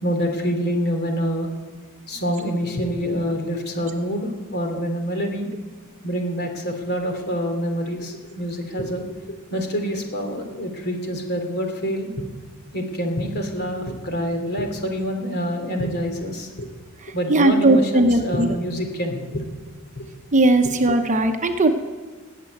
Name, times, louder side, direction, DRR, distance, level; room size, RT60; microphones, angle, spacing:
voice 1, 0.0-1.5 2.1-5.5 6.0-12.3 12.7-16.7 17.1-19.4 20.0-20.1, equal, 50° left, 4 dB, 2.9 m, -26 dB
voice 2, 17.3-18.6 20.3-21.7, right 2 dB, 35° right, 6 dB, 0.9 m, -18 dB
19.0 x 7.7 x 9.2 m, 1.4 s
head